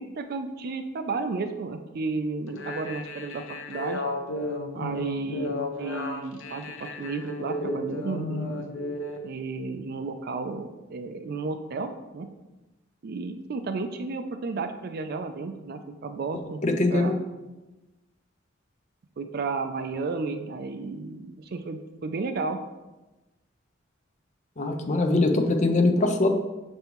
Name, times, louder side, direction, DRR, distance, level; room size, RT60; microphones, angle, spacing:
voice 1, 0.0-4.0 4.7-5.5 5.8-8.6 9.2-12.3 13.0-17.1 19.2-22.6, right 3 dB, 50° right, 8 dB, 0.4 m, -33 dB
sound 1, 2.5-9.2, left 1 dB, 80° left, 0.8 m, -33 dB
voice 2, 16.3-17.2 24.6-26.3, left 2 dB, 40° left, 4 dB, 0.6 m, -23 dB
6.5 x 5.3 x 3.0 m, 1.1 s
head